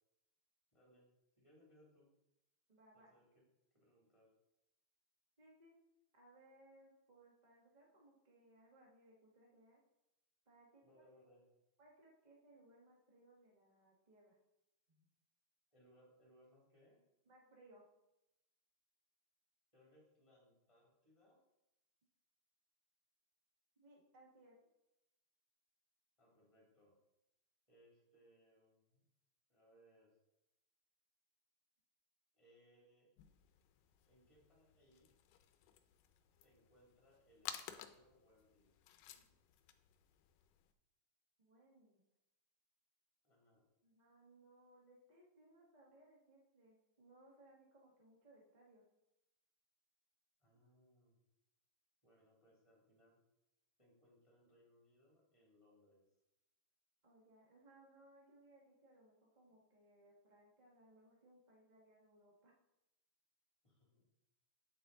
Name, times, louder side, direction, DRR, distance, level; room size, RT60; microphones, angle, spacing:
voice 1, 0.7-1.1 1.4-2.1 2.9-3.4 3.7-4.3 10.8-11.5 15.7-17.0 19.7-21.4 26.2-27.0 27.7-29.0 29.5-30.2 32.3-33.1 34.0-35.1 36.4-38.7 43.2-43.6 50.4-51.2 52.0-53.2 53.8-56.0 63.6-64.1, equal, 10° left, -4 dB, 2.0 m, -70 dB
voice 2, 2.7-3.1 5.4-5.7 6.1-9.8 10.4-11.0 11.8-14.4 14.9-15.1 17.2-17.9 23.7-24.5 39.1-39.4 41.4-42.0 43.8-48.8 50.5-50.6 57.0-62.5, right 1 dB, 20° right, -3 dB, 1.1 m, -66 dB
sound 1, 33.2-40.7, left 10 dB, 85° left, 2.3 m, -55 dB
9.3 x 6.9 x 3.9 m, 0.91 s
omnidirectional pair, 3.8 m